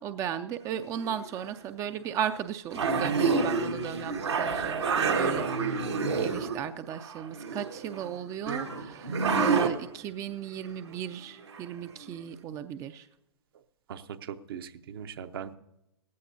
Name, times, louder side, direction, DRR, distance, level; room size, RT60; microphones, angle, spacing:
voice 1, 0.0-13.1, right 9 dB, 20° right, 10 dB, 0.4 m, -36 dB
sound 1, 1.0-1.4 2.2-2.3 2.7-6.5 6.9-8.1 8.5-9.7 11.5-11.6 12.0-12.1, right 4 dB, 80° right, 1.7 m, -28 dB
voice 2, 6.0-6.4 13.9-15.6, right 8 dB, 55° right, 10 dB, 0.9 m, -40 dB
18.0 x 15.0 x 2.8 m, 0.88 s
figure-of-eight pair, 115°, 14 cm